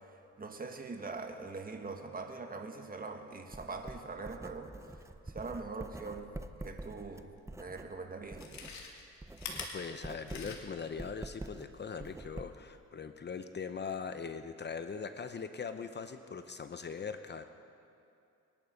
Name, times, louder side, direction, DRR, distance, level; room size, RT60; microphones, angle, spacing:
voice 1, 0.4-4.7 5.3-6.3 6.6-7.3 7.6-8.4, right 3 dB, 30° right, 4 dB, 1.6 m, -42 dB
Writing, 3.5-8.8 9.1-12.8, right 2 dB, 10° right, 0.6 m, -46 dB
Chewing mastication, 7.5-7.6 8.2-10.9 11.3-11.4, left 5 dB, 65° left, 2.3 m, -44 dB
voice 2, 9.7-17.4, left 5 dB, 35° left, 9 dB, 0.8 m, -41 dB
23.0 x 11.0 x 5.2 m, 2.6 s
cardioid pair, 90°, 30 cm